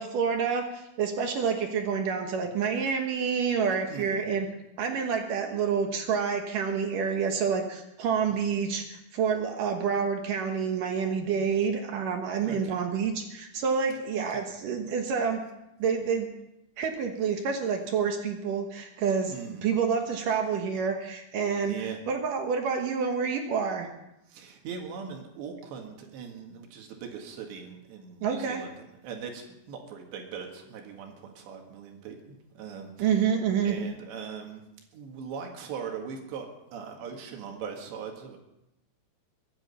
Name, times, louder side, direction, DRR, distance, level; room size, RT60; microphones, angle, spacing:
voice 1, 0.0-4.5 4.8-15.4 15.8-16.3 16.8-23.9 28.2-28.6 33.0-33.8, right 6 dB, 65° right, 4 dB, 2.5 m, -28 dB
voice 2, 3.9-4.3 8.3-8.4 12.4-12.8 14.2-14.4 19.3-19.6 21.6-22.0 24.3-28.7 29.0-32.2 32.6-33.1 33.6-34.6 34.9-38.4, right 6 dB, 80° right, 2 dB, 4.0 m, -40 dB
23.0 x 10.5 x 5.6 m, 0.86 s
omnidirectional pair, 5.0 m